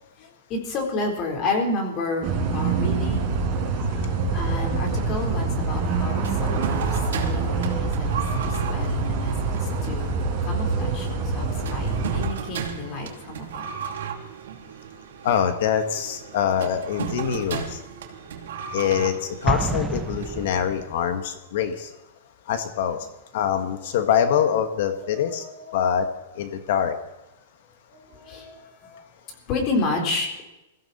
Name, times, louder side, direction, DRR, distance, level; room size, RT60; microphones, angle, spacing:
voice 1, 0.5-3.4 3.9-6.8 7.1-13.7 25.0-25.8 27.9-29.0 29.4-30.4, left 2 dB, 30° left, 3 dB, 3.9 m, -31 dB
sound 1, 2.2-12.3, right 4 dB, 30° right, 4.8 m, -25 dB
sound 2, 6.2-20.9, right 7 dB, 80° right, 2.9 m, -36 dB
voice 2, 15.2-17.8 18.7-21.9 22.5-23.0 23.3-25.4 25.7-26.1 26.3-27.0, left 8 dB, 60° left, 8 dB, 1.5 m, -24 dB
Explosion, 19.5-21.0, right 3 dB, 5° right, 0.9 m, -28 dB
22.0 x 15.5 x 4.2 m, 0.96 s
supercardioid pair, 160°, 0 cm